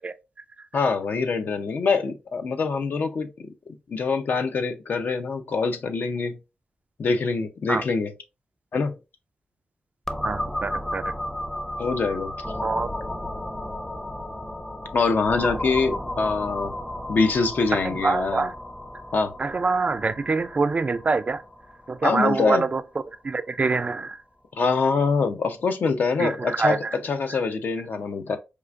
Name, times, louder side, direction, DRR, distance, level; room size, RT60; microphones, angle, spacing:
voice 1, 0.7-3.3 3.9-6.4 7.0-8.1 8.7-9.0 11.8-12.5 14.9-16.8 17.1-18.5 19.1-19.4 22.0-22.7 24.6-28.4, left 4 dB, 65° left, 0.6 m, -24 dB
sound 1, 10.1-23.6, left 1 dB, 15° left, 0.6 m, -34 dB
voice 2, 10.2-11.0 12.6-12.9 17.8-18.5 19.4-21.4 21.9-22.8 23.2-24.2 26.2-26.8, right 4 dB, 40° right, 0.4 m, -25 dB
4.6 x 2.4 x 2.4 m
cardioid pair, 60°, 3 cm